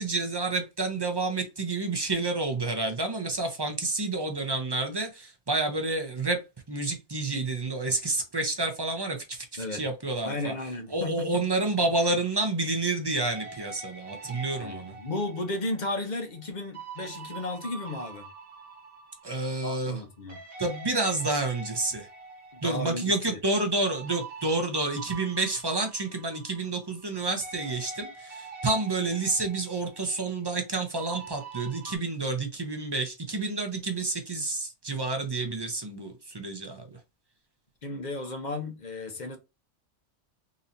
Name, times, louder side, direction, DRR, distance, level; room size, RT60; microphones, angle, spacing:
voice 1, 0.0-6.4 6.7-10.5 10.9-14.9 19.2-20.0 20.6-22.1 22.6-36.9, right 2 dB, 25° right, 0.6 m, -29 dB
voice 2, 9.6-9.9 10.2-11.5 14.6-18.3 19.6-20.4 22.5-23.4 37.8-39.4, left 2 dB, 45° left, 0.8 m, -34 dB
sound 1, 13.3-20.0 20.3-27.1 27.4-32.0, right 4 dB, 55° right, 1.2 m, -45 dB
3.9 x 2.8 x 2.6 m
omnidirectional pair, 1.3 m